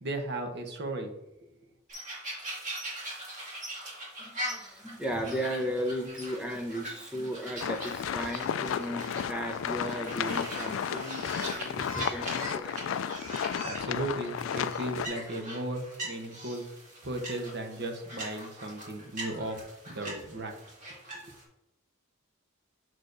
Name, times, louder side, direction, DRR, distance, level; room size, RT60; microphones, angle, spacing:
voice 1, 0.0-1.1 13.3-16.7 17.0-20.5, right 1 dB, 50° right, 4 dB, 0.9 m, -36 dB
sound 1, 1.9-21.4, equal, 35° right, 2.0 m, -41 dB
voice 2, 4.2-12.8, equal, 5° right, 2 dB, 0.7 m, -35 dB
sound 2, 7.6-15.1, left 8 dB, 65° left, 0.3 m, -33 dB
6.4 x 6.2 x 2.6 m, 0.93 s
head